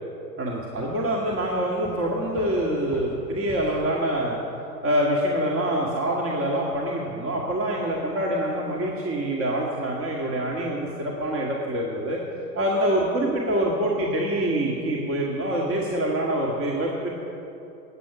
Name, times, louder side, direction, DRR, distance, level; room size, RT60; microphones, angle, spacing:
voice 1, 0.4-4.4 4.8-12.2 12.5-17.1, right 1 dB, 25° right, -2 dB, 2.0 m, -25 dB
Walk footsteps, 0.8-4.1, left 4 dB, 10° left, 2.5 m, -44 dB
17.5 x 9.3 x 6.0 m, 2.9 s
figure-of-eight pair, 95°, 49 cm